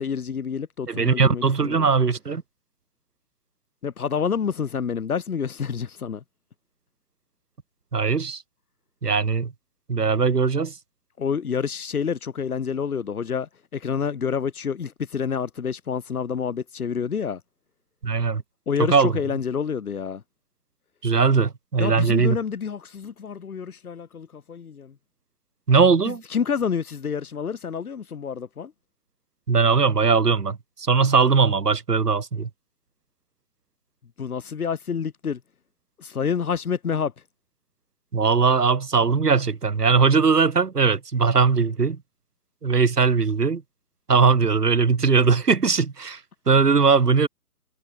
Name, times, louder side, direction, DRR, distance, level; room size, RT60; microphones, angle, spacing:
voice 1, 0.0-1.9 3.8-6.2 11.2-17.4 18.7-20.2 21.8-25.0 26.0-28.7 34.2-35.4 36.0-37.1, left 6 dB, 70° left, 3.1 m, -28 dB
voice 2, 0.9-2.4 7.9-8.4 9.0-9.5 9.9-10.8 18.0-18.4 18.8-19.2 21.0-22.4 25.7-26.2 29.5-32.5 38.1-42.0 42.6-43.6 44.1-46.2 46.5-47.3, right 5 dB, 85° right, 2.0 m, -20 dB
figure-of-eight pair, 135°, 46 cm